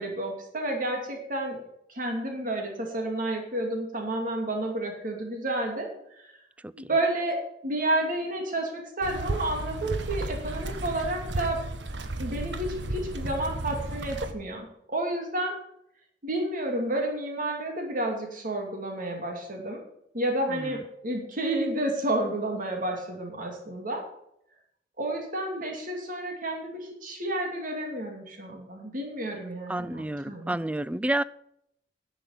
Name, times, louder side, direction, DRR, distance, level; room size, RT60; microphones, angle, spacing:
voice 1, 0.0-1.6 1.9-5.9 6.2-6.3 6.7-11.6 12.2-15.6 16.2-19.8 20.1-24.0 25.0-30.6, right 1 dB, 50° right, 2.5 m, -30 dB
sound 1, 9.0-14.3, right 1 dB, 80° right, 1.2 m, -33 dB
voice 2, 29.7-31.2, right 1 dB, 10° right, 0.3 m, -29 dB
11.0 x 6.9 x 7.7 m
head